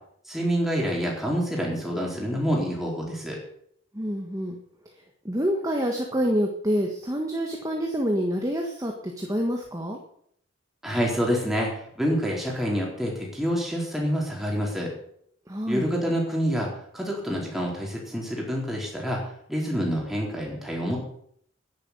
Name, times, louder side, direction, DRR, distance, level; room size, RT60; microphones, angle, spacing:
voice 1, 0.3-3.4 10.8-11.7 12.0-14.9 15.7-16.7 16.9-19.2 19.5-21.0, equal, ahead, -3 dB, 4.2 m, -27 dB
voice 2, 3.9-4.6 5.2-10.0 15.5-15.9, equal, 15° right, 1 dB, 1.5 m, -27 dB
10.5 x 10.5 x 8.3 m, 0.68 s
head